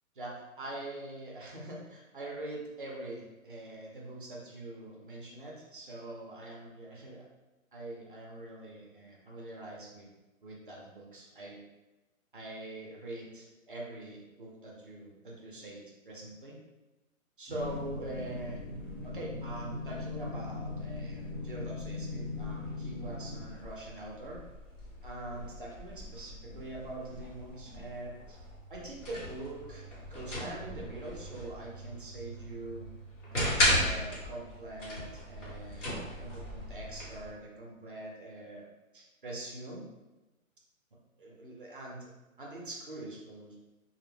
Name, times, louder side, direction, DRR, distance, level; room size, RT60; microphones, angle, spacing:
voice 1, 0.2-7.2 7.7-10.1 10.4-11.6 12.3-16.6 17.4-18.6 19.0-24.4 25.0-28.4 28.7-29.8 30.1-32.9 33.3-38.7 38.9-39.9 41.2-42.1 42.4-43.6, right 2 dB, 40° right, -2 dB, 0.4 m, -43 dB
sound 1, 17.5-23.4, left 3 dB, 20° right, 0.9 m, -39 dB
sound 2, 17.6-37.3, left 1 dB, 60° left, 1.1 m, -38 dB
2.1 x 2.0 x 3.1 m, 1.1 s
hypercardioid pair, 165°, 42 cm